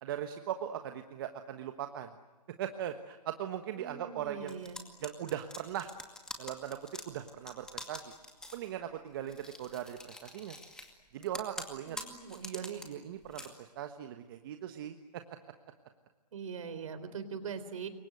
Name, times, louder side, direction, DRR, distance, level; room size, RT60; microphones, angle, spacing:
voice 1, 0.0-2.1 2.6-4.6 5.0-5.9 6.4-6.8 7.0-8.1 8.5-10.6 11.1-12.0 12.3-15.0, right 10 dB, 35° right, 7 dB, 1.3 m, -39 dB
voice 2, 3.8-4.8 11.9-12.8 16.3-17.9, right 6 dB, 50° right, 11 dB, 3.9 m, -42 dB
sound 1, 4.5-8.7 9.3-10.9 11.2-12.9 13.2-13.5, left 2 dB, 5° left, 2.2 m, -45 dB
28.0 x 24.0 x 7.9 m, 1.3 s
hypercardioid pair, 155°, 21 cm